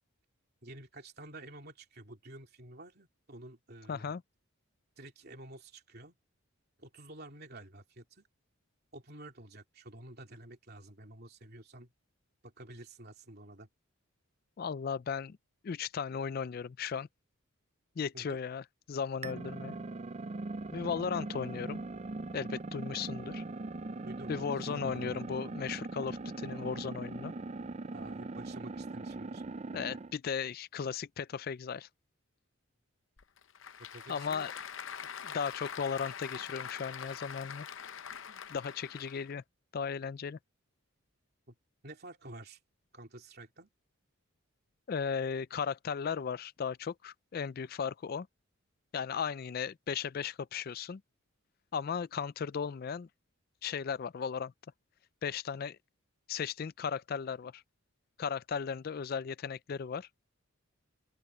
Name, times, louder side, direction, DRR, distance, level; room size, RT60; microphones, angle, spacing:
voice 1, 0.6-4.1 5.0-6.2 6.8-8.3 8.9-11.9 12.4-13.7 18.1-18.4 24.0-25.2 27.9-29.4 33.9-34.5 41.5-41.6 41.8-42.6 42.9-43.7, right 1 dB, 50° right, 3.1 m, -50 dB
voice 2, 3.9-4.2 14.6-15.4 15.6-17.1 18.0-18.6 18.9-19.8 20.7-21.8 22.3-23.4 24.3-27.3 29.7-31.9 34.1-34.5 35.2-37.7 38.5-39.4 39.7-40.4 44.9-48.3 48.9-51.0 51.7-53.1 53.6-54.5 55.2-55.8 56.3-57.6 58.2-60.1, left 6 dB, 45° left, 0.3 m, -36 dB
sound 1, 19.2-30.1, right 3 dB, 30° right, 0.4 m, -40 dB
Applause / Crowd, 33.2-39.3, left 8 dB, 60° left, 0.7 m, -44 dB
open air
head